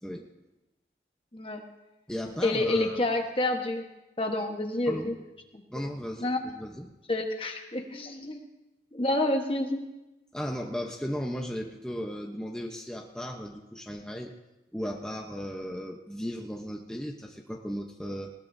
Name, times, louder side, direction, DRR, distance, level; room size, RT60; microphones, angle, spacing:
voice 1, 1.3-1.6 2.4-3.8 4.2-5.1 5.5-5.6 6.2-6.4 7.1-8.4 8.9-9.8, left 2 dB, 30° left, 4 dB, 1.2 m, -28 dB
voice 2, 2.1-3.0 4.9-5.1 5.7-6.9 10.3-14.3 14.7-18.3, equal, 5° left, 0 dB, 0.9 m, -36 dB
20.0 x 19.0 x 2.7 m, 1.0 s
head